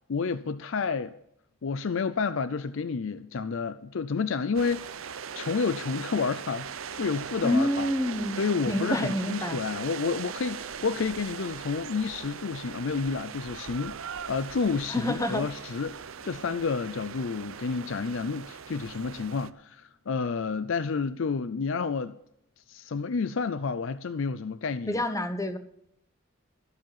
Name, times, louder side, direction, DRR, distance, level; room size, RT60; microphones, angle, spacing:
voice 1, 0.1-1.1 1.6-5.0 5.3-7.9 8.4-22.2 22.7-25.0, left 5 dB, 65° left, 0.5 m, -30 dB
sound 1, 4.5-19.5, right 7 dB, 70° right, 0.6 m, -39 dB
voice 2, 7.4-9.6 14.9-15.4 24.9-25.6, left 1 dB, 15° left, 0.9 m, -28 dB
14.0 x 7.6 x 7.3 m
head